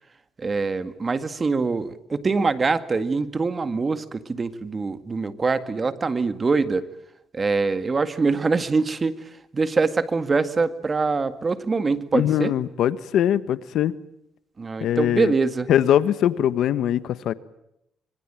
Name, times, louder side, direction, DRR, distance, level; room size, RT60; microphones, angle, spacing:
voice 1, 0.4-6.9 7.3-12.5 14.6-15.7, right 4 dB, 30° right, 11 dB, 1.9 m, -24 dB
voice 2, 12.1-13.9 14.8-15.3 15.7-17.3, left 10 dB, 75° left, 15 dB, 1.2 m, -21 dB
25.5 x 23.5 x 9.0 m, 0.80 s
cardioid pair, 105°, 0 cm